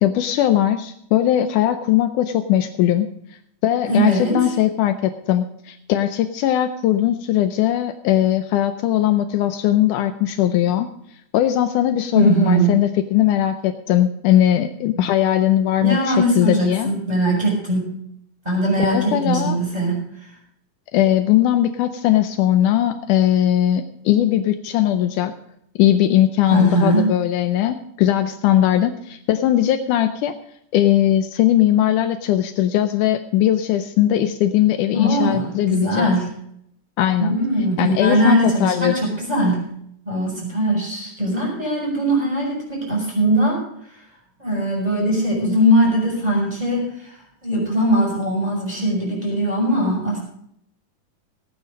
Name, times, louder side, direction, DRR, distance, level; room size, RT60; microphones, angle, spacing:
voice 1, 0.0-3.1 3.6-10.9 11.3-16.9 18.8-19.6 20.9-25.3 25.8-30.3 30.7-36.1 37.0-37.4 37.8-38.9, left 12 dB, 80° left, 8 dB, 2.1 m, -19 dB
voice 2, 3.8-4.5 12.1-12.8 15.8-18.1 18.4-20.3 26.5-27.1 34.9-36.4 37.2-39.8 40.0-43.6 43.9-44.0 44.4-50.2, right 1 dB, 10° right, -2 dB, 5.8 m, -20 dB
16.5 x 9.2 x 5.2 m, 0.72 s
omnidirectional pair, 3.7 m